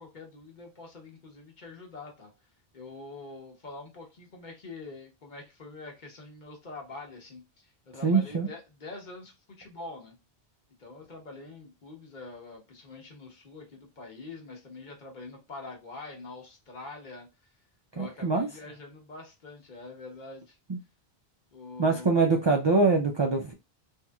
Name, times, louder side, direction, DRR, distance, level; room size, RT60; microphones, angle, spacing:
voice 1, 0.0-2.3 2.7-10.2 10.8-17.3 17.9-20.6 21.5-22.1, left 3 dB, 50° left, 1.0 m, -45 dB
voice 2, 8.0-8.5 18.0-18.5 20.7-20.8 21.8-23.5, right 3 dB, 50° right, 0.3 m, -24 dB
2.9 x 2.7 x 2.3 m
omnidirectional pair, 1.0 m